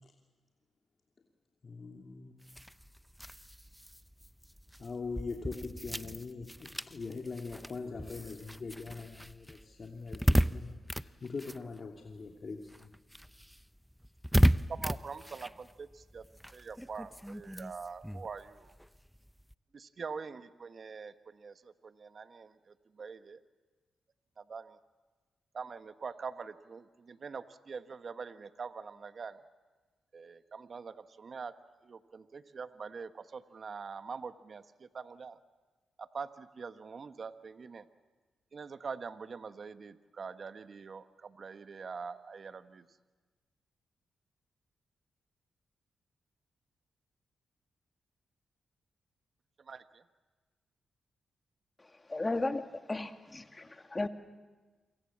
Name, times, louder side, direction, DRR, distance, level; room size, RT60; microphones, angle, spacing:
voice 1, 1.6-2.4 4.8-12.9, left 4 dB, 50° left, 1 dB, 2.7 m, -42 dB
sound 1, 2.4-12.3 12.6-19.5, equal, ahead, 0.8 m, -34 dB
voice 2, 14.3-16.3 16.5-18.7 19.7-23.4 24.4-24.8 25.5-29.4 30.1-31.5 31.8-35.4 36.0-37.9 38.5-42.9 49.6-50.0, right 5 dB, 55° right, 10 dB, 1.3 m, -44 dB
voice 3, 52.1-52.6 52.9-54.1, left 2 dB, 30° left, 7 dB, 2.1 m, -34 dB
28.0 x 25.0 x 7.4 m, 1.3 s
supercardioid pair, 50°, 0 cm